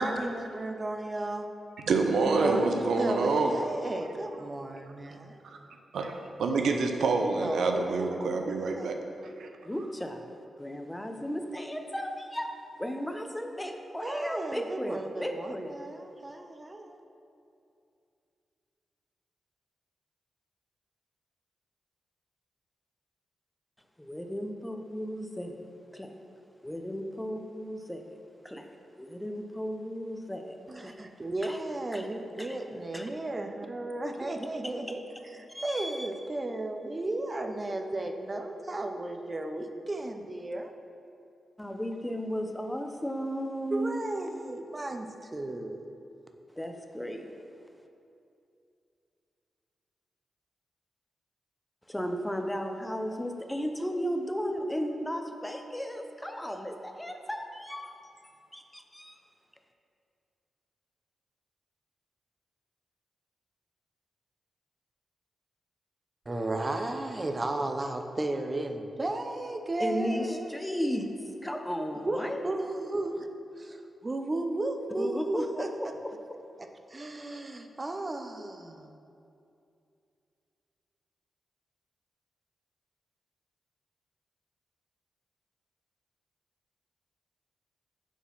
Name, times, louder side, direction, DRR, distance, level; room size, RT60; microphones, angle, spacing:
voice 1, 0.0-1.5 2.2-5.4 7.4-8.2 8.8-9.0 14.0-17.0 30.7-40.7 43.7-45.8 66.3-70.6 72.1-73.3 73.6-75.7 76.6-78.9, right 2 dB, 30° right, 6 dB, 0.6 m, -34 dB
voice 2, 1.9-3.5 5.9-9.0 9.4-9.5, right 3 dB, 80° right, 4 dB, 0.5 m, -27 dB
voice 3, 9.6-10.3 10.6-12.5 12.8-15.8 24.0-25.6 25.9-26.1 26.6-28.0 28.4-28.7 29.0-31.0 31.4-31.6 31.9-32.1 32.4-32.6 32.9-33.1 34.2-34.3 35.5-36.1 41.6-44.0 46.6-47.3 51.9-58.2 58.5-59.2 69.8-71.1 71.4-72.4 75.0-76.4, equal, 10° left, 5 dB, 0.6 m, -35 dB
6.1 x 3.9 x 5.6 m, 2.6 s
cardioid pair, 55°, 0 cm